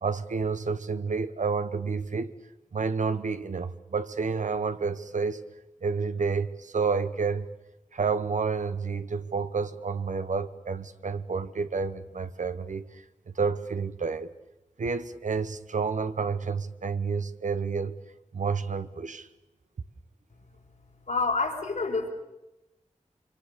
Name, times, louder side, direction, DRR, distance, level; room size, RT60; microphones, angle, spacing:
voice 1, 0.0-2.3 2.7-5.4 5.8-7.5 7.9-13.0 13.4-14.3 14.8-17.9 18.3-19.3, right 5 dB, 90° right, 1.1 m, -29 dB
voice 2, 21.1-22.1, left 3 dB, 85° left, 4.4 m, -27 dB
25.5 x 25.0 x 6.9 m
wide cardioid pair, 85°, 13 cm